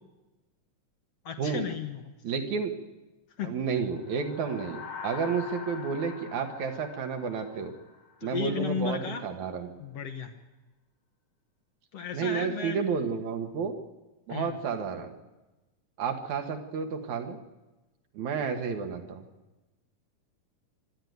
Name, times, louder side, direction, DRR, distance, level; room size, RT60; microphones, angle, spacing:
voice 1, 1.3-2.2 3.4-3.5 8.2-9.3 9.8-10.3 11.9-12.8 14.3-14.6, left 6 dB, 60° left, 5 dB, 1.9 m, -34 dB
voice 2, 2.2-2.7 3.4-7.7 8.2-9.7 12.1-13.7 14.3-15.1 16.0-17.4 18.1-19.2, right 6 dB, 65° right, 5 dB, 2.7 m, -31 dB
sound 1, 3.9-8.5, left 5 dB, 80° left, 5.9 m, -44 dB
25.5 x 11.0 x 9.4 m, 1.1 s
omnidirectional pair, 3.8 m